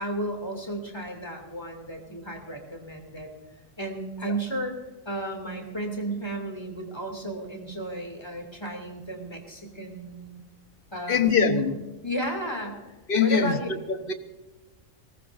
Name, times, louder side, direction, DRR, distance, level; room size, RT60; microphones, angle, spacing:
voice 1, 0.0-3.3 3.8-4.8 5.0-10.4 10.9-11.7 12.0-12.9 13.2-13.7, right 1 dB, 20° left, 2.7 m, -33 dB
voice 2, 11.1-11.7 13.1-13.6 14.1-14.2, left 7 dB, 45° left, 1.2 m, -22 dB
21.5 x 18.5 x 2.6 m
omnidirectional pair, 1.3 m